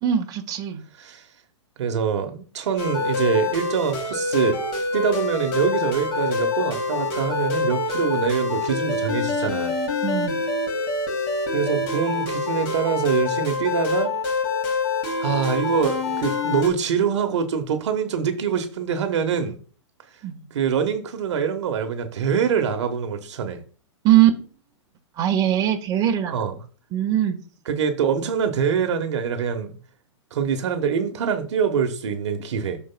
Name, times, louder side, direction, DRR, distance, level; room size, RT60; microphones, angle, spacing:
voice 1, 0.0-0.8 10.0-10.3 20.2-20.3 24.0-24.4 25.2-26.3 26.9-27.4, right 11 dB, 25° right, 1.4 m, -20 dB
voice 2, 1.8-4.6 4.9-9.8 11.5-14.1 15.2-19.6 20.5-23.6 26.3-26.6 27.6-29.7 30.3-32.8, right 7 dB, 65° right, 1.2 m, -24 dB
sound 1, 2.8-16.7, left 3 dB, 45° left, 2.8 m, -26 dB
13.0 x 4.6 x 2.3 m
hypercardioid pair, 130°, 16 cm